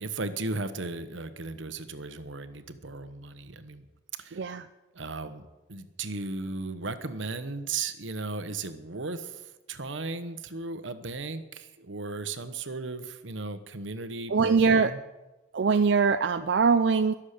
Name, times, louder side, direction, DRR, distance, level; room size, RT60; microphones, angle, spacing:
voice 1, 0.0-3.8 4.2-4.5 4.9-5.4 5.7-9.4 9.7-15.0, right 3 dB, 85° right, 11 dB, 1.1 m, -36 dB
voice 2, 14.3-14.9 15.5-17.1, right 5 dB, 70° right, 9 dB, 0.5 m, -22 dB
21.5 x 7.4 x 6.7 m, 1.1 s
head